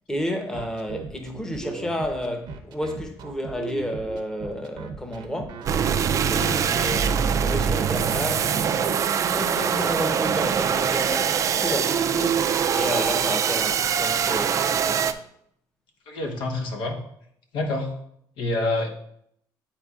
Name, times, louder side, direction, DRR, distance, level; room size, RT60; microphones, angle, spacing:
voice 1, 0.1-5.6 6.3-15.1, equal, 10° left, 0.8 m, -31 dB
sound 1, 0.5-8.1, right 5 dB, 70° right, 0.7 m, -37 dB
sound 2, 5.7-15.1, right 7 dB, 45° right, 0.4 m, -23 dB
voice 2, 16.1-16.9 17.5-17.9 18.4-18.9, left 2 dB, 90° left, 1.1 m, -26 dB
9.7 x 4.3 x 2.4 m
cardioid pair, 135°, 8 cm